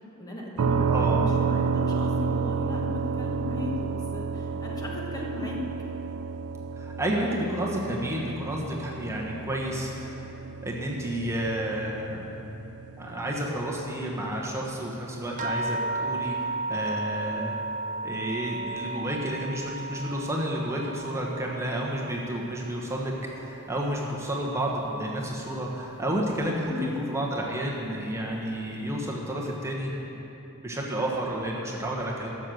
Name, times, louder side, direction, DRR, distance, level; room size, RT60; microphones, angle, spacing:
voice 1, 0.2-5.6 26.7-27.0, left 2 dB, 15° left, -2 dB, 1.2 m, -36 dB
sound 1, 0.6-14.3, right 5 dB, 80° right, 0.4 m, -31 dB
voice 2, 0.9-1.3 6.8-10.3 10.6-12.3 13.0-17.6 18.0-29.9 30.6-32.3, right 1 dB, 15° right, -3 dB, 1.2 m, -31 dB
sound 2, 15.4-24.2 24.5-25.4 26.1-26.2 26.7-26.8, right 3 dB, 35° right, 0.6 m, -35 dB
12.5 x 6.8 x 7.6 m, 3.0 s
head